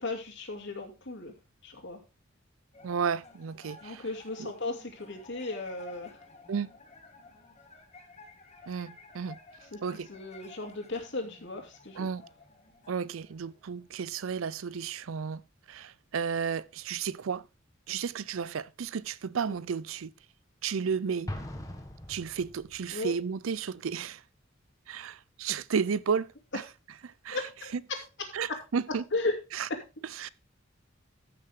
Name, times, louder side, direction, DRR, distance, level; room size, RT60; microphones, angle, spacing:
voice 1, 0.0-1.3 1.6-2.0 3.8-6.1 9.7-9.8 10.1-12.1 22.9-23.1 27.3-28.6 29.1-29.4 29.7-29.8, left 3 dB, 65° left, 2.7 m, -35 dB
sound 1, 2.7-14.3, left 3 dB, 35° left, 2.0 m, -54 dB
voice 2, 2.8-4.0 4.4-4.5 6.5-6.7 8.7-9.4 9.8-10.1 12.0-12.2 12.9-15.4 15.7-17.5 17.9-20.1 20.6-21.3 22.1-24.2 24.9-26.6 27.0-27.4 28.3-29.0 29.5-29.7 30.2-30.3, right 6 dB, 80° right, 0.5 m, -33 dB
Explosion, 21.3-23.0, left 1 dB, 15° left, 1.8 m, -40 dB
14.0 x 6.6 x 3.6 m
head